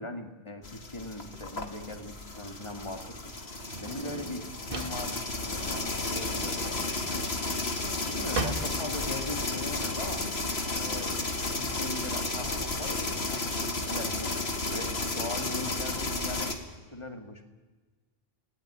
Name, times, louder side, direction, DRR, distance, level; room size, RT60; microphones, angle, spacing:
voice 1, 0.0-6.8 7.1-7.3 8.0-10.3 10.7-11.2 11.5-17.4, left 1 dB, 30° left, 5 dB, 2.4 m, -40 dB
sound 1, 0.6-16.6, left 2 dB, 85° left, 2.4 m, -33 dB
Drawer open or close, 1.2-10.8, right 3 dB, 60° right, 1.9 m, -40 dB
28.0 x 19.0 x 9.9 m, 1.3 s
omnidirectional pair, 1.0 m